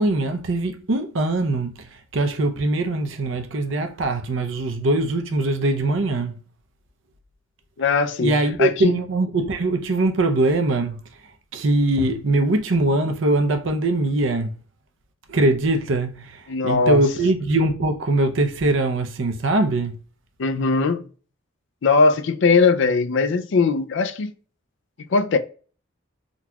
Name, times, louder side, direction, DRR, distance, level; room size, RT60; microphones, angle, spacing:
voice 1, 0.0-1.9 2.1-6.3 8.2-11.0 11.5-14.5 15.3-19.9, right 2 dB, 65° right, 0.6 m, -22 dB
voice 2, 7.8-8.3 8.6-9.0 16.5-17.0 20.4-21.1 21.8-24.3 25.1-25.4, left 4 dB, 60° left, 0.4 m, -19 dB
3.9 x 2.3 x 2.8 m
head